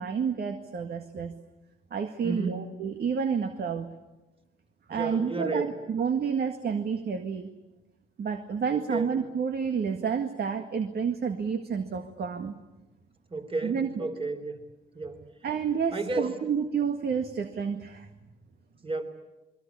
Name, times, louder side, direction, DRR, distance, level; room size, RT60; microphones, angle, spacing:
voice 1, 0.0-1.3 1.9-3.9 4.9-7.5 8.2-12.5 13.6-14.1 15.4-18.1, right 6 dB, 55° right, 7 dB, 1.9 m, -30 dB
voice 2, 2.2-2.7 4.9-5.7 8.7-9.1 13.3-14.6 14.9-15.2 15.9-16.3 18.8-19.0, right 3 dB, 25° right, 7 dB, 4.0 m, -32 dB
28.5 x 22.5 x 8.5 m, 1.1 s
cardioid pair, 90°, 20 cm